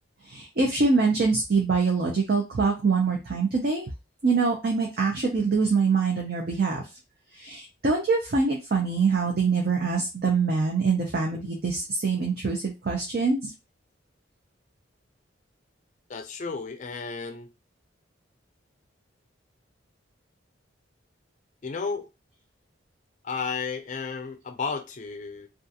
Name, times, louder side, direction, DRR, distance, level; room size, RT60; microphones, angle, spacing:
voice 1, 0.2-3.9 4.2-6.8 7.3-13.5, right 4 dB, 50° right, 0.5 m, -24 dB
voice 2, 16.1-17.5 21.6-22.1 23.2-25.5, left 5 dB, 40° left, 0.4 m, -33 dB
2.4 x 2.3 x 2.7 m
head